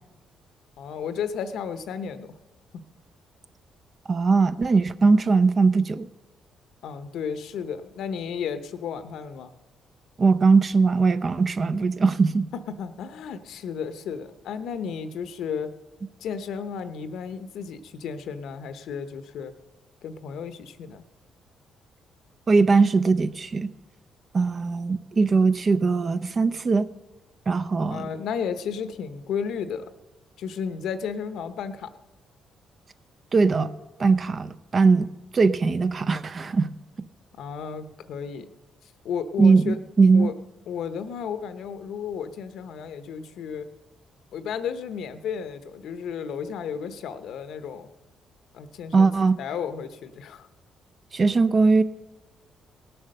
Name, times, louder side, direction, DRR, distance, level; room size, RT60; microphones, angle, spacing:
voice 1, 0.8-2.3 6.8-9.5 12.5-15.7 16.2-19.5 20.0-21.0 27.9-29.8 30.4-31.9 37.3-38.5 39.0-39.8 40.1-40.3 40.7-43.7 44.3-47.9 48.5-49.1 49.4-50.5, left 7 dB, 75° left, 11 dB, 0.9 m, -33 dB
voice 2, 4.1-6.1 10.2-12.5 22.5-23.7 24.3-26.9 27.5-28.1 33.3-33.7 34.0-35.1 35.3-36.7 39.4-40.3 48.9-49.4 51.1-51.8, right 4 dB, 40° right, 13 dB, 0.6 m, -20 dB
18.0 x 7.9 x 6.6 m, 1.1 s
cardioid pair, 90°, 0 cm